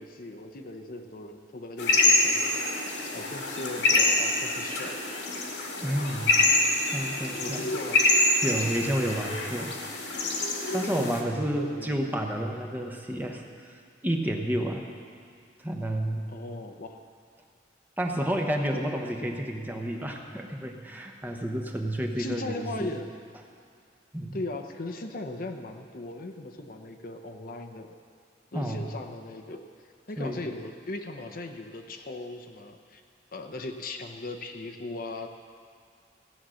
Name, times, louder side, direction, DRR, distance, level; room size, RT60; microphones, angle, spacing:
voice 1, 0.0-2.6 3.1-5.0 7.4-8.0 11.0-12.0 16.3-17.0 22.2-23.1 24.3-27.9 28.5-29.6 30.1-33.0 33.3-35.3, left 2 dB, 50° left, 5 dB, 0.9 m, -38 dB
sound 1, 1.8-11.2, left 2 dB, 80° left, 2.0 m, -26 dB
voice 2, 5.8-6.3 6.9-7.7 8.4-9.7 10.7-14.9 15.6-16.4 18.0-22.9 24.1-24.4 28.5-28.9 30.2-30.4, equal, 10° right, 2 dB, 1.0 m, -30 dB
16.0 x 8.8 x 6.4 m, 2.3 s
head